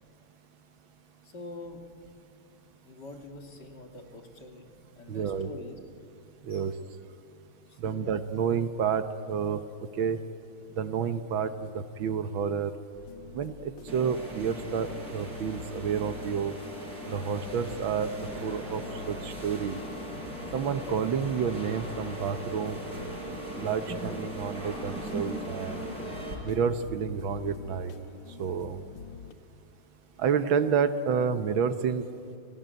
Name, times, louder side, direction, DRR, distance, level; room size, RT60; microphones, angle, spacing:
voice 1, 1.2-1.9 2.6-5.8 6.5-6.7 7.7-8.1, left 2 dB, 50° left, 4 dB, 3.0 m, -45 dB
voice 2, 5.1-5.5 6.4-6.7 7.8-9.6 10.0-10.2 10.8-12.7 13.3-16.6 17.1-18.1 18.4-19.8 20.5-22.8 23.6-25.8 26.4-27.9 28.4-28.8 30.2-32.0, right 7 dB, 70° right, 11 dB, 1.7 m, -29 dB
sound 1, 12.9-29.3, left 6 dB, 70° left, 2.0 m, -46 dB
sound 2, 13.9-26.3, right 1 dB, 40° right, 5.3 m, -39 dB
29.5 x 19.5 x 9.3 m, 2.6 s
omnidirectional pair, 2.4 m